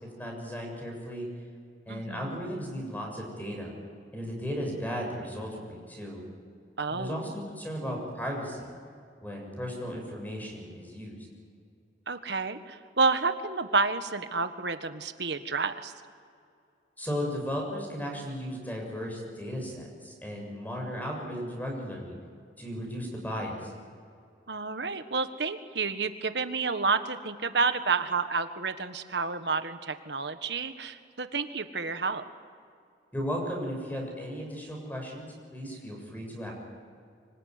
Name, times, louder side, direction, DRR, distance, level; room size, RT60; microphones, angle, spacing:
voice 1, 0.2-1.3 1.9-3.7 4.1-6.2 6.9-8.7 9.2-11.2 17.0-22.1 22.6-23.7 33.1-36.5, equal, 10° left, 0 dB, 7.1 m, -35 dB
voice 2, 1.9-2.4 6.8-7.2 12.1-15.9 24.5-32.2, right 4 dB, 65° right, 9 dB, 1.5 m, -30 dB
25.0 x 24.0 x 9.7 m, 2.4 s
head